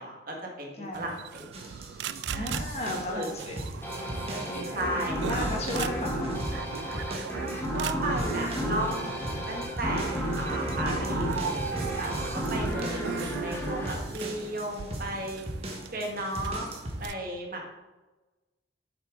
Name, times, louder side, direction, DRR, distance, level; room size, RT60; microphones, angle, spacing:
voice 1, 0.0-1.5 2.3-2.5 3.1-3.3 4.7-5.4 7.7-12.2 12.5-15.4 15.9-16.7 17.0-17.6, right 1 dB, 50° right, 0 dB, 1.6 m, -34 dB
voice 2, 0.7-1.1 2.3-3.6 3.9-6.4 6.7-6.9 12.7-12.8, left 1 dB, 35° left, 0 dB, 1.5 m, -36 dB
sound 1, 0.9-17.1, right 7 dB, 70° right, 0.3 m, -40 dB
sound 2, 1.5-17.1, right 1 dB, 35° right, 1.3 m, -38 dB
sound 3, 3.8-15.0, right 1 dB, 10° left, 1.3 m, -33 dB
8.0 x 6.8 x 3.8 m, 1.1 s
head